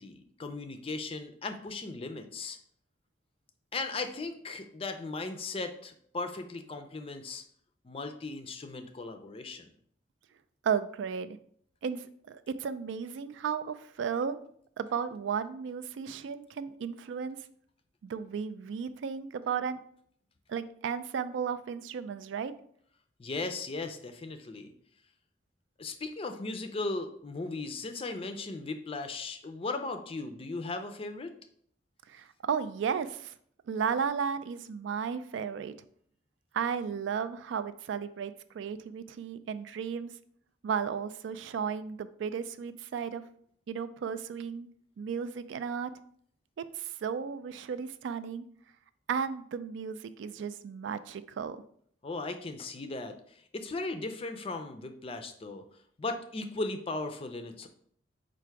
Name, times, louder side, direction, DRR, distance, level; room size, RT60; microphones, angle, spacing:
voice 1, 0.0-2.6 3.7-7.4 7.8-9.7 23.2-24.7 25.8-31.3 52.0-55.6 56.0-57.7, left 3 dB, 30° left, 7 dB, 0.4 m, -37 dB
voice 2, 10.6-11.4 11.8-14.4 14.8-17.4 18.0-19.8 20.5-22.5 32.1-33.3 33.7-35.7 36.5-40.1 40.6-43.2 43.7-44.7 45.0-45.9 46.6-48.5 49.1-51.6, right 6 dB, 75° right, 12 dB, 0.3 m, -34 dB
4.6 x 2.5 x 4.5 m, 0.63 s
head